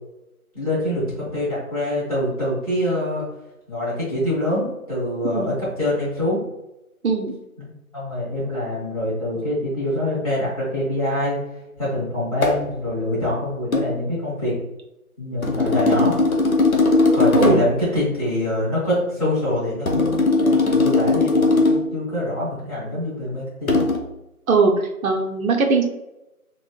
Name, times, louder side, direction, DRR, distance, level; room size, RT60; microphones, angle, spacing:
voice 1, 0.5-3.2 3.7-6.4 7.6-11.4 11.8-14.5 15.2-16.2 17.1-23.8, left 1 dB, 25° left, -11 dB, 1.3 m, -25 dB
voice 2, 7.0-7.3 17.4-17.6 24.5-24.7 25.0-25.8, right 4 dB, 70° right, 3 dB, 0.6 m, -19 dB
sound 1, 12.4-12.7 13.7-13.9 15.4-17.8 19.9-21.9 23.7-24.0, left 3 dB, 70° left, 0.7 m, -18 dB
3.8 x 2.0 x 2.3 m, 0.93 s
figure-of-eight pair, 160°, 44 cm